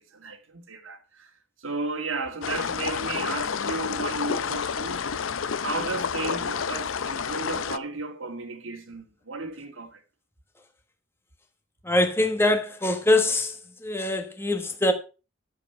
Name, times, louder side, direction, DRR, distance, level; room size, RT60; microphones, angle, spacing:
voice 1, 0.0-1.3 1.6-5.1 5.6-10.0, right 3 dB, 80° right, 1.8 m, -34 dB
sound 1, 2.4-7.8, left 6 dB, 85° left, 0.6 m, -29 dB
voice 2, 11.8-13.6 13.8-14.9, left 1 dB, 10° left, 1.3 m, -23 dB
11.0 x 7.5 x 5.7 m
head